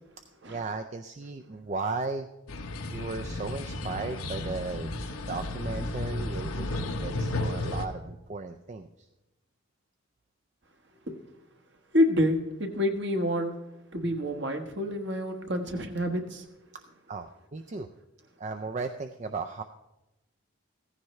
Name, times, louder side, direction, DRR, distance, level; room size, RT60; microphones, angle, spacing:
voice 1, 0.5-2.3 2.9-5.0 5.3-9.1 16.7-16.8 17.1-17.9 18.4-19.6, right 3 dB, 35° right, 6 dB, 0.4 m, -36 dB
sound 1, 2.5-7.9, left 2 dB, 90° left, 1.1 m, -33 dB
voice 2, 11.9-13.6 13.9-16.4, left 1 dB, 55° right, 5 dB, 1.3 m, -28 dB
16.0 x 14.5 x 3.2 m, 0.99 s
head